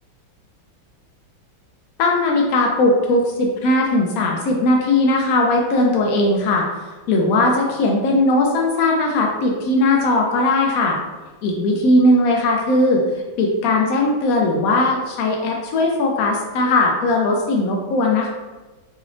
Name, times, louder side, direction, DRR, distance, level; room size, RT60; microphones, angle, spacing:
voice 1, 2.0-6.6 7.1-11.0 11.4-13.0 13.4-18.3, left 2 dB, 85° left, 0 dB, 0.7 m, -18 dB
3.9 x 3.1 x 2.5 m, 1.2 s
omnidirectional pair, 2.1 m